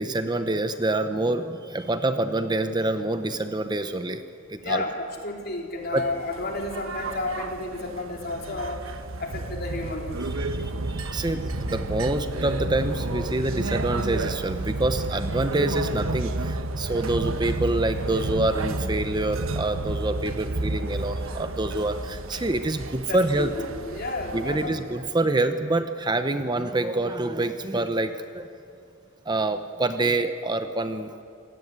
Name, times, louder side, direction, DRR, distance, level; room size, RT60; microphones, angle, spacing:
voice 1, 0.0-4.2 4.5-4.8 5.9-6.0 10.4-23.5 24.3-28.5 29.2-31.2, right 2 dB, 20° right, 9 dB, 0.8 m, -26 dB
voice 2, 4.6-8.8 9.2-10.2 10.5-10.8 23.1-24.7, left 2 dB, 50° left, 1 dB, 3.9 m, -32 dB
sound 1, 5.9-25.1, right 2 dB, 85° right, 1.2 m, -31 dB
27.5 x 17.0 x 9.6 m, 2.6 s
head